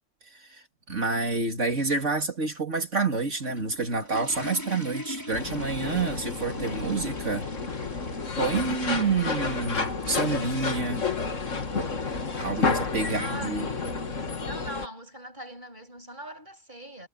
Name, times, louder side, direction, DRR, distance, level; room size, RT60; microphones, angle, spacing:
voice 1, 0.3-7.5 8.4-11.0 12.4-13.7, right 4 dB, 70° right, 3.6 m, -28 dB
sound 1, 3.2-13.3, left 1 dB, 15° left, 5.7 m, -43 dB
sound 2, 5.3-14.9, left 4 dB, 85° left, 2.4 m, -30 dB
voice 2, 13.0-14.0 14.4-17.1, right 1 dB, 40° right, 8.3 m, -41 dB
omnidirectional pair, 1.3 m